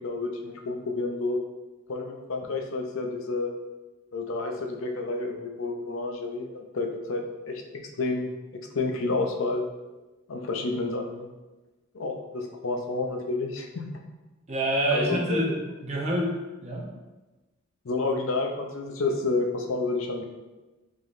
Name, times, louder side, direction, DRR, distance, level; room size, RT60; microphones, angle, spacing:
voice 1, 0.0-1.4 1.9-3.5 4.1-7.6 8.0-8.3 8.7-9.6 10.3-11.3 11.9-13.9 14.9-15.4 17.8-20.2, left 3 dB, 70° left, 2 dB, 0.6 m, -30 dB
voice 2, 14.5-16.3 16.6-16.9, right 1 dB, 30° right, -1 dB, 0.7 m, -27 dB
5.1 x 3.7 x 2.6 m, 1.1 s
head